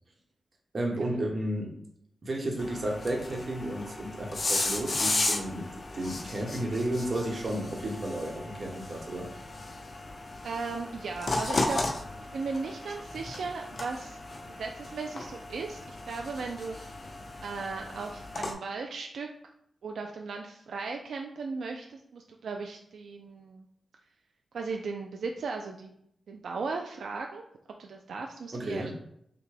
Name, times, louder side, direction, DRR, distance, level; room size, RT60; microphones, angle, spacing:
voice 1, 0.7-1.7 2.2-5.7 5.9-9.3 28.5-28.9, right 1 dB, 50° right, 0 dB, 1.0 m, -32 dB
sound 1, 2.6-18.5, left 2 dB, 45° left, 0.6 m, -35 dB
voice 2, 10.4-11.8 12.3-14.2 14.6-16.9 17.4-19.3 19.8-23.7 24.5-25.9 26.3-27.5 27.8-28.9, right 4 dB, 85° right, 2 dB, 0.3 m, -37 dB
5.8 x 2.2 x 3.3 m, 0.72 s
wide cardioid pair, 110°, 0 cm